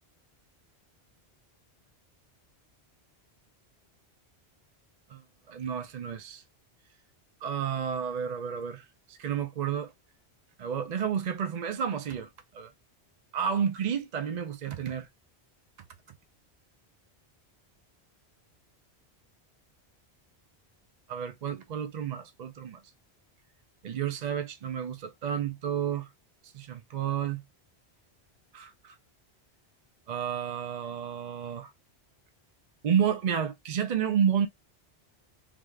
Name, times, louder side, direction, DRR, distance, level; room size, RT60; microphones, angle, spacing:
voice 1, 5.1-6.4 7.4-9.9 10.6-12.7 13.3-15.1 21.1-22.8 23.8-26.1 26.5-27.4 28.5-28.9 30.1-31.7 32.8-34.5, right 8 dB, 55° right, 0.5 m, -31 dB
3.4 x 2.4 x 3.2 m
omnidirectional pair, 1.1 m